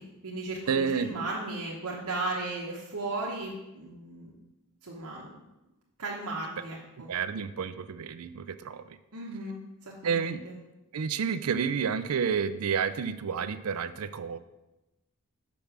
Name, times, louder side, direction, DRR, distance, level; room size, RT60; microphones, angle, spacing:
voice 1, 0.0-4.3 4.8-5.4 6.0-7.1 9.1-10.6, right 2 dB, 85° right, -4 dB, 1.1 m, -36 dB
voice 2, 0.7-1.2 7.1-9.0 10.0-10.4 10.9-14.4, right 6 dB, 70° right, 13 dB, 0.4 m, -30 dB
6.0 x 5.3 x 6.0 m, 0.97 s
head